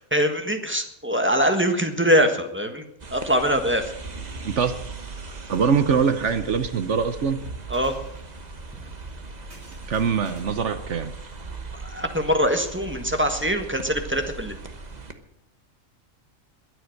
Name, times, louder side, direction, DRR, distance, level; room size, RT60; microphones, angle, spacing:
voice 1, 0.1-2.9 3.1-3.9 7.7-7.9 11.8-14.5, equal, 10° right, 5 dB, 1.4 m, -23 dB
sound 1, 3.0-15.1, right 4 dB, 35° right, 1.2 m, -39 dB
sound 2, 4.0-10.5, right 2 dB, 85° right, 3.7 m, -45 dB
voice 2, 5.5-7.4 9.9-11.1, right 6 dB, 65° right, 11 dB, 1.2 m, -23 dB
22.0 x 7.9 x 6.5 m, 0.78 s
omnidirectional pair, 1.4 m